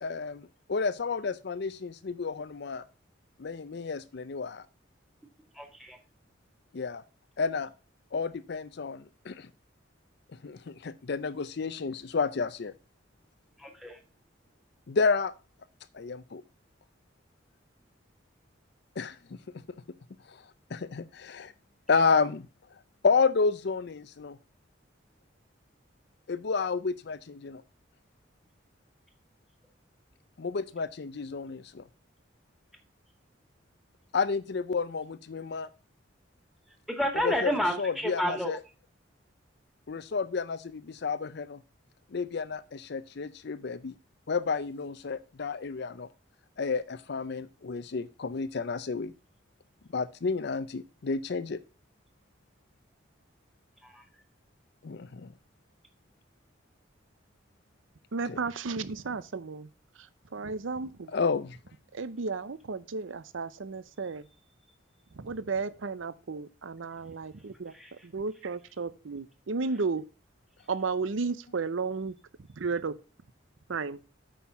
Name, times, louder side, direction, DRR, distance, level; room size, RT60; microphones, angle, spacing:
voice 1, 0.0-2.8 3.4-4.7 6.7-7.0 7.4-7.7 8.1-9.5 10.4-12.7 14.9-15.3 15.9-16.4 19.0-19.2 20.3-20.4 20.7-21.5 21.9-22.5 23.0-24.4 26.3-27.6 30.4-31.8 34.1-35.7 37.2-38.6 39.9-41.6 42.1-43.9 44.3-46.1 46.6-49.1 49.9-51.6 54.8-55.3 58.3-58.4 61.1-61.6, left 4 dB, 60° left, 0.5 m, -31 dB
voice 2, 5.6-6.0 13.6-14.0 36.9-38.5 53.8-54.0 67.7-67.9, equal, ahead, 1.9 m, -30 dB
voice 3, 58.1-59.7 60.3-61.1 61.9-64.2 65.2-67.7 68.0-70.0 70.7-72.1 72.6-72.9 73.7-74.0, right 4 dB, 75° right, 0.6 m, -33 dB
8.6 x 5.7 x 5.7 m
head